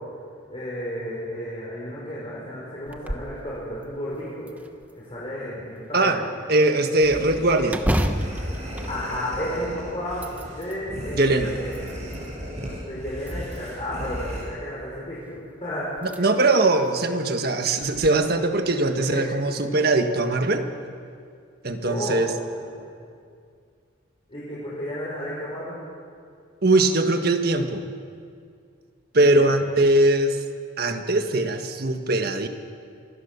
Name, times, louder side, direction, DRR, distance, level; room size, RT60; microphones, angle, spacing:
voice 1, 0.5-4.5 4.9-6.2 8.9-11.8 12.8-15.9 19.1-19.3 21.8-22.3 22.6-22.9 24.3-25.8 29.2-29.6, equal, 30° left, -8 dB, 5.9 m, -32 dB
sound 1, 2.9-3.4 3.8-3.9 4.5-5.3 7.7-9.7 10.1-10.8 11.4-12.3 13.2-13.9 15.3-15.4 16.0-16.2 16.7-16.8 17.8-18.1, equal, 10° right, 1.0 m, -30 dB
voice 2, 6.5-7.8 11.1-11.5 16.0-20.7 21.6-22.3 26.6-27.8 29.1-30.4 30.8-32.5, right 2 dB, 50° right, 6 dB, 1.6 m, -21 dB
sound 2, 7.0-14.4, equal, 35° right, 6.6 m, -36 dB
26.5 x 20.5 x 7.1 m, 2.3 s
head